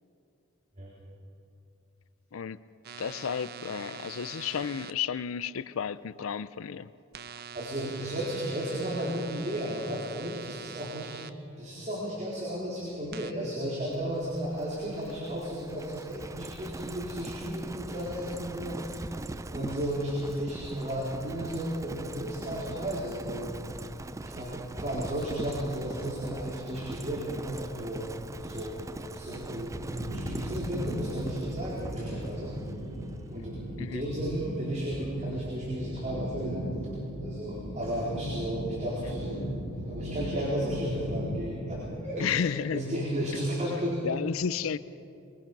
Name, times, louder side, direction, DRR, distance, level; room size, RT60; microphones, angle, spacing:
voice 1, 2.3-2.6 3.0-6.9 33.8-34.0 39.0-39.4 42.2-43.0 44.0-44.8, left 7 dB, 85° left, 15 dB, 0.5 m, -32 dB
sound 1, 2.8-4.9 7.1-11.3 13.1-13.3, right 7 dB, 50° right, 0.7 m, -44 dB
voice 2, 7.5-18.8 19.5-23.5 24.2-28.1 28.4-28.8 29.1-29.8 30.1-32.8 33.3-36.6 37.2-39.3 39.9-44.0, equal, 35° right, -5 dB, 4.1 m, -34 dB
Livestock farm animals working animals, 13.9-33.6, right 2 dB, 15° right, 0.4 m, -41 dB
sound 2, 29.9-41.8, equal, 85° right, 6.4 m, -37 dB
23.5 x 22.0 x 6.0 m, 2.8 s
head